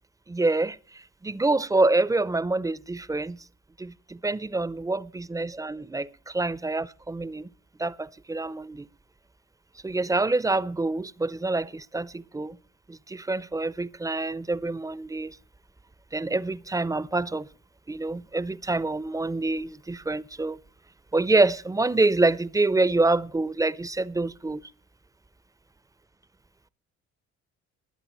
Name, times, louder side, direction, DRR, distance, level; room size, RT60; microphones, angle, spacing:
voice 1, 0.3-3.4 3.8-7.5 7.8-8.9 9.8-12.6 12.9-15.4 16.1-17.5 17.9-20.6 21.1-24.6, right 2 dB, 10° right, 0.5 m, -26 dB
20.5 x 9.7 x 3.0 m
cardioid pair, 90°, 30 cm